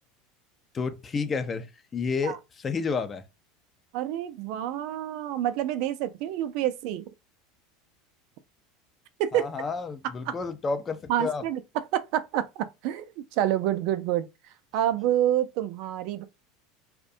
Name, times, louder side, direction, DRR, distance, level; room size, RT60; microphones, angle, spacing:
voice 1, 0.7-2.4 2.6-3.2 9.3-11.4, left 5 dB, 30° left, 0.4 m, -30 dB
voice 2, 3.9-7.1 9.2-9.5 10.3-10.4 11.1-14.3 14.7-16.2, right 11 dB, 65° right, 0.3 m, -28 dB
2.4 x 2.1 x 2.6 m
hypercardioid pair, 85°, 0 cm